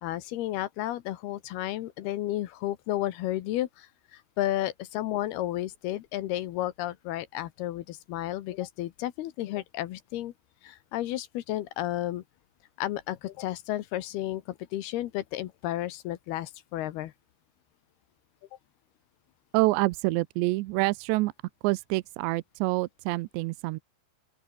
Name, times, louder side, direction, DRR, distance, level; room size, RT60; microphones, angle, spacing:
voice 1, 0.0-10.3 10.6-12.2 12.8-17.1, left 14 dB, 70° left, 2.7 m, -32 dB
voice 2, 19.5-21.3 21.6-23.8, right 21 dB, 80° right, 2.8 m, -27 dB
open air
omnidirectional pair, 5.3 m